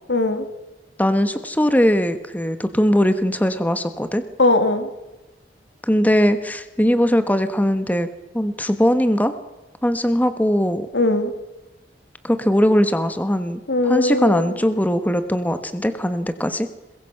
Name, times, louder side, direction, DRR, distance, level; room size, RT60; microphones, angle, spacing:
voice 1, 0.1-0.5 4.4-4.9 10.9-11.3 13.7-14.6, left 2 dB, 90° left, 8 dB, 2.6 m, -19 dB
voice 2, 1.0-4.2 5.8-8.1 8.3-9.3 9.8-10.9 12.2-16.7, equal, 10° left, 10 dB, 1.3 m, -20 dB
22.0 x 22.0 x 5.9 m, 1.1 s
head